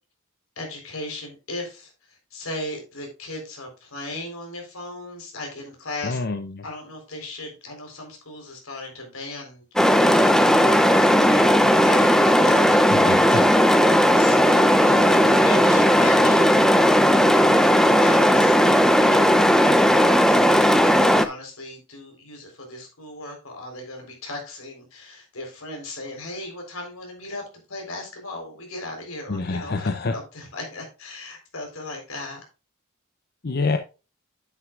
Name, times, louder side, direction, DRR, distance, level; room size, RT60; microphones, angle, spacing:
voice 1, 0.6-6.2 6.6-9.6 10.1-13.5 14.2-16.7 17.2-18.6 20.0-27.4 27.7-32.4, left 2 dB, 80° left, 2 dB, 4.1 m, -37 dB
voice 2, 6.0-6.6 12.9-13.4 29.3-30.2 33.4-33.8, left 3 dB, 50° left, 7 dB, 0.7 m, -26 dB
sound 1, 9.8-21.3, equal, 5° left, 0.5 m, -16 dB
9.4 x 9.1 x 2.4 m, 0.31 s
head